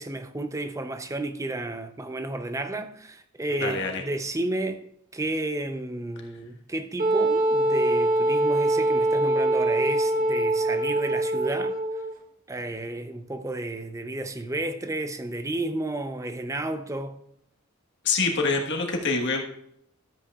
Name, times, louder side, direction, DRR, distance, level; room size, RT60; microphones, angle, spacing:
voice 1, 0.0-4.8 5.1-11.7 12.5-17.2, right 2 dB, 15° right, 0.6 m, -32 dB
voice 2, 3.6-4.0 18.0-19.4, left 4 dB, 55° left, 1.4 m, -25 dB
Wind instrument woodwind instrument, 7.0-12.1, right 1 dB, 40° right, 1.0 m, -23 dB
13.0 x 8.2 x 2.4 m
head